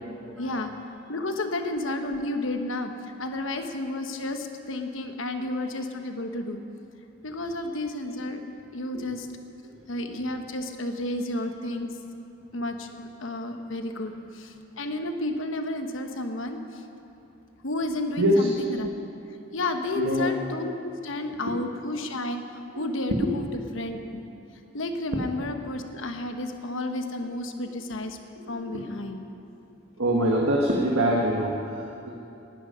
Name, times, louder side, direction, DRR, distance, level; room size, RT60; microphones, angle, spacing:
voice 1, 0.4-0.7 1.1-6.6 7.2-8.4 8.7-9.3 9.9-11.9 12.5-16.8 17.6-18.9 19.5-22.4 22.8-24.2 24.7-28.2 28.5-29.2, left 2 dB, 70° left, 6 dB, 1.1 m, -31 dB
voice 2, 18.2-18.5 19.9-20.3 23.1-23.3 28.3-28.8 30.0-32.1, right 1 dB, 90° right, -2 dB, 1.5 m, -25 dB
19.0 x 10.5 x 5.6 m, 2.8 s
head